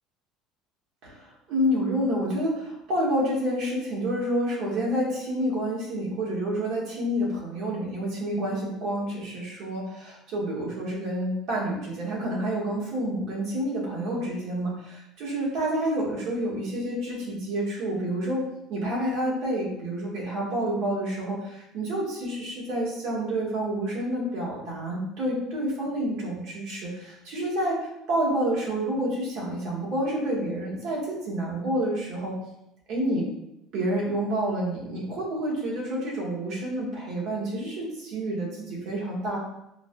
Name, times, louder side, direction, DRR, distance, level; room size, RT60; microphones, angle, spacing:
voice 1, 1.0-18.4 18.7-32.3 32.9-33.3 33.7-39.4, right 1 dB, 60° right, -4 dB, 1.3 m, -29 dB
4.6 x 2.3 x 2.2 m, 0.84 s
supercardioid pair, 115°, 0 cm